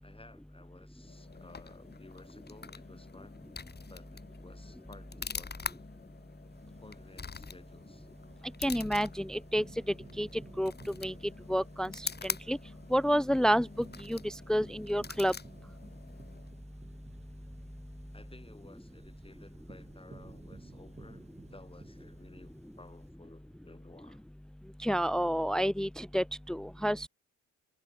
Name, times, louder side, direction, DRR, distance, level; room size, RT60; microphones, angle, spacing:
voice 1, 0.0-3.5 3.9-5.8 6.8-8.1 18.1-24.3, left 2 dB, 20° left, 6.4 m, -56 dB
sound 1, 1.0-16.6, left 5 dB, 35° left, 4.0 m, -45 dB
sound 2, 6.5-23.1, right 3 dB, 20° right, 5.7 m, -55 dB
voice 2, 8.6-9.6 10.2-10.7 11.0-11.1 11.5-12.6 12.9-13.7 14.0-15.3 24.8-27.1, equal, ahead, 0.7 m, -29 dB
cardioid pair, 90°, 30 cm